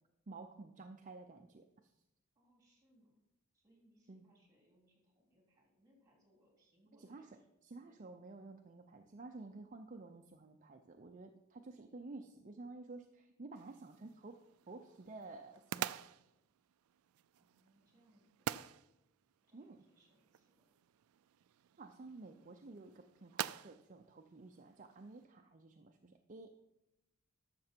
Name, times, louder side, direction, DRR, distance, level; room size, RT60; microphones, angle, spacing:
voice 1, 0.3-1.9 4.1-4.3 6.9-14.4 14.7-16.0 19.5-19.8 21.8-26.5, right 3 dB, 40° right, 4 dB, 0.6 m, -52 dB
voice 2, 2.3-3.2 3.5-7.4 7.7-8.3 17.4-18.6 19.5-20.7, equal, 15° right, 0 dB, 3.2 m, -72 dB
sound 1, 13.6-25.3, right 11 dB, 90° right, 0.3 m, -48 dB
12.5 x 6.8 x 4.5 m, 0.92 s
head